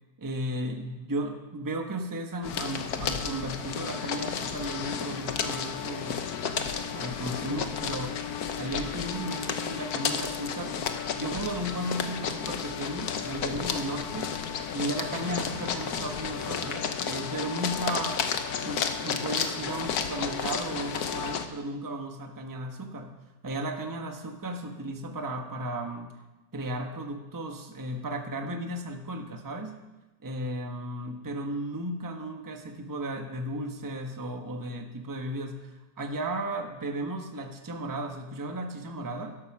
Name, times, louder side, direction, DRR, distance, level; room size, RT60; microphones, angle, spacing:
voice 1, 0.2-6.3 6.5-8.2 8.6-10.9 11.1-14.4 14.7-18.2 18.6-23.2 23.4-26.1 26.5-29.8 30.2-39.3, right 1 dB, 15° right, 4 dB, 1.0 m, -35 dB
sound 1, 2.4-21.5, left 7 dB, 60° left, 1.4 m, -32 dB
13.0 x 12.0 x 6.0 m, 1.1 s
omnidirectional pair, 1.9 m